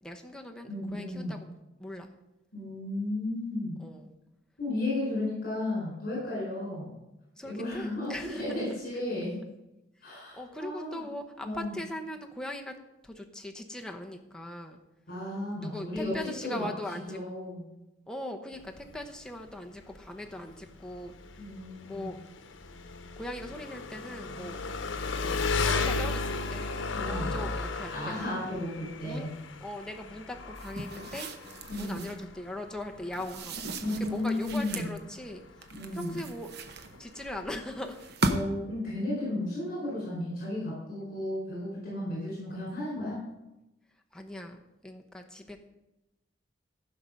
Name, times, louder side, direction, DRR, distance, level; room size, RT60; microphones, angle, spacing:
voice 1, 0.0-1.5 1.8-2.1 3.8-4.1 7.4-8.4 8.9-9.0 10.0-12.8 13.0-14.8 15.5-17.2 18.1-21.5 21.8-22.2 23.2-24.6 25.2-26.7 27.0-28.4 29.0-29.3 29.6-31.3 31.8-35.4 35.9-36.5 37.0-38.0 44.1-45.6, left 1 dB, 5° left, 2 dB, 0.9 m, -40 dB
voice 2, 0.7-1.3 2.5-3.8 4.6-6.9 7.4-9.4 10.0-11.0 11.4-11.7 15.1-16.7 17.1-17.7 21.4-22.1 26.9-27.4 27.9-29.3 31.7-32.1 33.8-34.9 35.7-36.2 38.2-43.2, left 1 dB, 50° left, -5 dB, 4.6 m, -34 dB
Engine, 18.5-38.1, left 4 dB, 85° left, 0.9 m, -36 dB
sound 1, 30.6-32.2 33.1-35.0 35.6-37.2 37.9-38.7, right 2 dB, 60° right, 0.9 m, -36 dB
15.0 x 6.0 x 5.3 m, 0.95 s
head